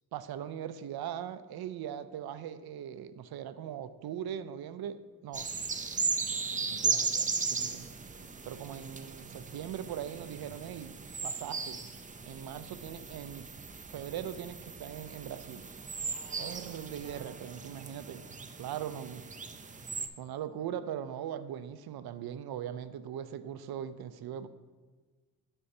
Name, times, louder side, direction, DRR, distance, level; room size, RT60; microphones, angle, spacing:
voice 1, 0.1-5.5 6.7-7.8 8.4-11.0 11.2-11.9 12.2-15.6 16.4-18.2 18.6-19.2 20.2-24.5, right 9 dB, 75° right, 0.5 m, -40 dB
sound 1, 5.3-20.1, right 4 dB, 20° right, 0.4 m, -37 dB
9.6 x 6.8 x 2.7 m
wide cardioid pair, 115°, 37 cm